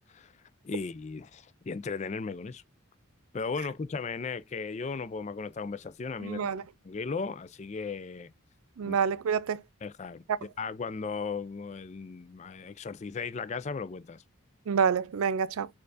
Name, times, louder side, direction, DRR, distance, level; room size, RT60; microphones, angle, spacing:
voice 1, 0.6-2.6 3.3-6.4 6.8-8.3 8.8-9.0 9.8-10.2 10.6-14.2, left 4 dB, 30° left, 0.3 m, -36 dB
voice 2, 6.2-6.6 8.8-9.6 14.7-15.7, right 6 dB, 80° right, 0.4 m, -27 dB
6.7 x 2.4 x 2.5 m
head